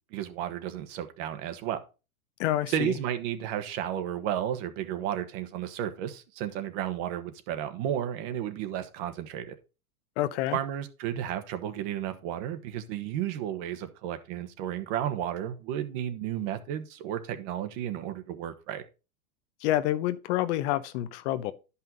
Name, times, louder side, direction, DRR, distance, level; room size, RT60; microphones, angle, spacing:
voice 1, 0.1-1.8 2.7-9.6 10.5-18.8, right 10 dB, 50° right, 1.4 m, -33 dB
voice 2, 2.4-2.9 10.2-10.6 19.6-21.5, left 14 dB, 50° left, 0.8 m, -28 dB
10.5 x 5.7 x 3.9 m
hypercardioid pair, 120°, 43 cm